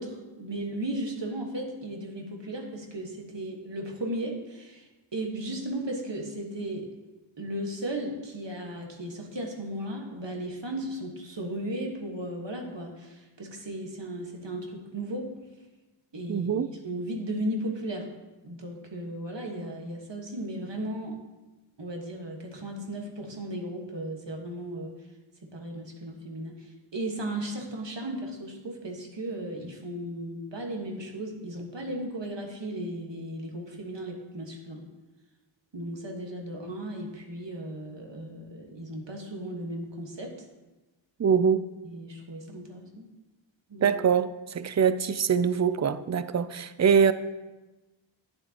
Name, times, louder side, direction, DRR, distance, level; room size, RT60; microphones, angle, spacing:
voice 1, 0.0-6.9 7.4-15.3 16.1-18.1 18.4-21.2 21.8-25.1 25.4-34.8 35.7-40.5 41.8-43.0 43.7-44.0, right 1 dB, 65° right, 1 dB, 1.6 m, -36 dB
voice 2, 16.3-16.7 41.2-41.6 43.8-47.1, right 7 dB, 40° right, 14 dB, 0.4 m, -23 dB
11.5 x 9.5 x 2.9 m, 1.1 s
wide cardioid pair, 60°, 47 cm